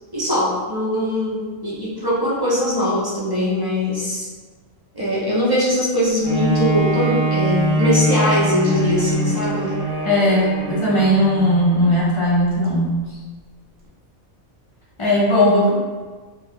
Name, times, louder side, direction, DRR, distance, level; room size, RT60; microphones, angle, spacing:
voice 1, 0.1-4.3 4.9-9.8, left 1 dB, 25° right, -8 dB, 0.5 m, -21 dB
Bowed string instrument, 6.2-11.9 12.5-12.6, right 2 dB, 60° right, 0.8 m, -23 dB
voice 2, 10.0-13.0 15.0-15.7, equal, 40° left, -6 dB, 0.5 m, -17 dB
2.4 x 2.3 x 3.2 m, 1.4 s
omnidirectional pair, 1.3 m